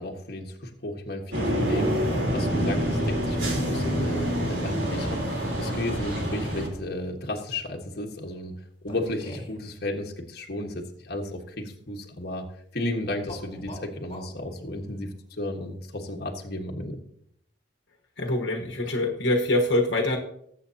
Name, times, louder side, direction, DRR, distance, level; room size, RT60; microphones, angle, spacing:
voice 1, 0.0-8.5 8.8-17.0, left 1 dB, 60° left, 1 dB, 1.4 m, -34 dB
sound 1, 1.3-6.7, equal, 70° right, 3.6 m, -27 dB
sound 2, 1.9-5.9 6.8-6.9 8.9-9.7 13.2-14.3, equal, 35° left, 2.6 m, -37 dB
voice 2, 18.2-20.2, left 1 dB, 80° left, 2 dB, 1.3 m, -24 dB
19.5 x 8.0 x 2.8 m, 0.71 s
head